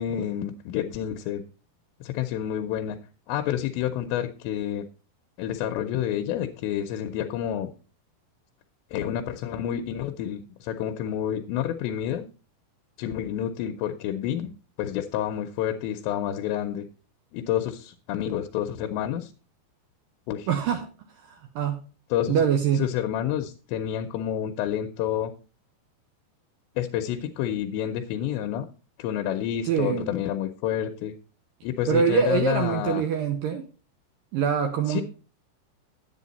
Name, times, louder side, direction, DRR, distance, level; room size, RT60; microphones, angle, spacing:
voice 1, 0.0-1.4 2.0-3.0 3.3-4.8 5.4-7.7 8.9-12.3 13.0-14.5 14.8-16.9 17.3-19.3 20.3-20.5 22.1-22.4 22.8-25.3 26.8-28.7 29.0-31.1 31.6-33.0 34.9-35.0, left 10 dB, 80° left, 6 dB, 2.9 m, -29 dB
voice 2, 20.5-20.9 21.2-21.8 22.3-22.9 29.6-30.1 31.9-33.6 34.3-35.0, right 7 dB, 80° right, 6 dB, 2.0 m, -24 dB
10.5 x 8.5 x 4.1 m, 0.35 s
omnidirectional pair, 5.1 m